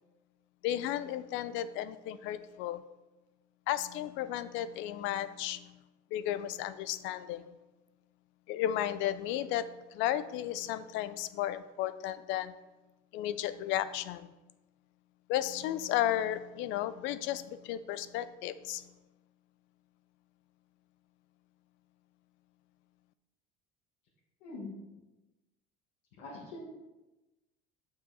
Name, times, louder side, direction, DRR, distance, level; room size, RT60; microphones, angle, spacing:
voice 1, 0.6-2.8 3.7-5.8 6.1-7.5 8.5-12.5 13.1-14.3 15.3-18.9, left 12 dB, 70° left, 14 dB, 0.5 m, -34 dB
voice 2, 24.4-24.8 26.2-26.7, left 2 dB, 90° left, -6 dB, 1.8 m, -43 dB
7.0 x 5.6 x 4.1 m, 1.1 s
cardioid pair, 115°, 21 cm